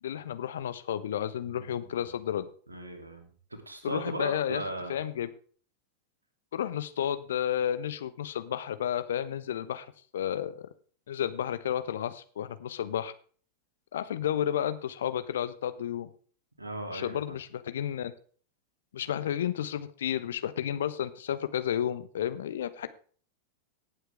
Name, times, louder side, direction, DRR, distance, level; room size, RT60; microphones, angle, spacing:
voice 1, 0.0-2.5 3.8-5.3 6.5-9.9 10.1-10.7 11.1-13.1 13.9-16.1 16.9-18.1 18.9-22.9, left 10 dB, 60° left, 12 dB, 1.0 m, -32 dB
voice 2, 1.4-1.8 2.7-3.3 3.7-5.0 16.6-17.4, right 1 dB, 80° right, 5 dB, 2.8 m, -37 dB
18.0 x 8.0 x 3.5 m, 0.43 s
figure-of-eight pair, 90°, 0 cm